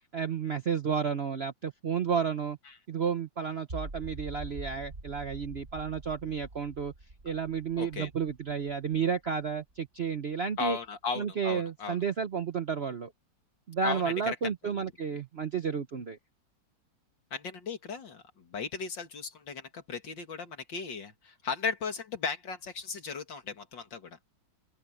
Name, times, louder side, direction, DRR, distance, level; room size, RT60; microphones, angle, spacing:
voice 1, 0.1-2.6 2.9-6.9 7.2-10.8 11.1-13.1 13.7-16.2, right 6 dB, 55° right, 0.7 m, -32 dB
sound 1, 3.7-9.8, right 2 dB, 35° right, 3.7 m, -45 dB
voice 2, 7.8-8.1 10.6-12.0 13.8-14.3 17.3-24.2, left 5 dB, 70° left, 2.9 m, -36 dB
open air
omnidirectional pair, 2.1 m